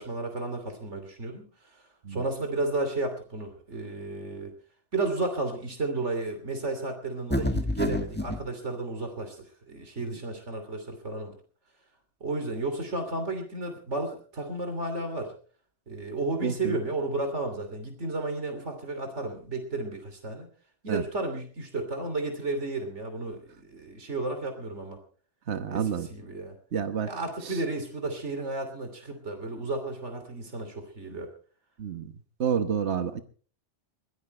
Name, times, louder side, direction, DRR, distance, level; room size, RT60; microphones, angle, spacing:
voice 1, 0.0-1.4 1.7-4.5 4.9-11.4 12.2-15.3 15.9-20.5 20.8-25.0 25.7-26.6 27.0-31.3, right 2 dB, 90° right, 6 dB, 3.3 m, -33 dB
sound 1, 7.3-8.4, left 1 dB, 10° left, 1.6 m, -28 dB
voice 2, 16.4-16.7 20.9-21.0 25.5-26.1 26.7-27.1 31.8-32.1 32.4-33.2, right 7 dB, 75° right, 10 dB, 1.5 m, -29 dB
22.0 x 16.0 x 3.3 m, 0.41 s
omnidirectional pair, 1.2 m